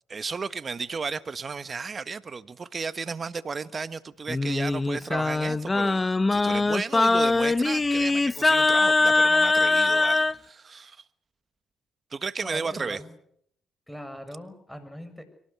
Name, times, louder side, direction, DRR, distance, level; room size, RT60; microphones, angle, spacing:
voice 1, 0.1-11.0 12.1-13.0, right 5 dB, 40° right, 1.4 m, -34 dB
Singing, 4.3-10.3, left 3 dB, 25° left, 1.0 m, -22 dB
voice 2, 12.4-13.1 13.9-15.3, equal, ahead, 6.6 m, -40 dB
24.0 x 18.5 x 8.3 m
supercardioid pair, 60°, 0 cm